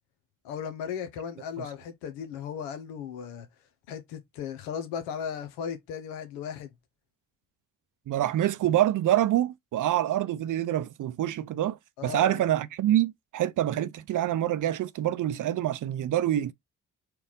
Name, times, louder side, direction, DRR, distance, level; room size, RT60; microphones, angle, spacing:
voice 1, 0.4-3.5 3.9-6.7 12.0-12.4, left 7 dB, 85° left, 0.9 m, -36 dB
voice 2, 8.1-11.8 12.0-16.5, right 12 dB, 55° right, 0.6 m, -26 dB
4.5 x 2.4 x 3.7 m
hypercardioid pair, 45°, 38 cm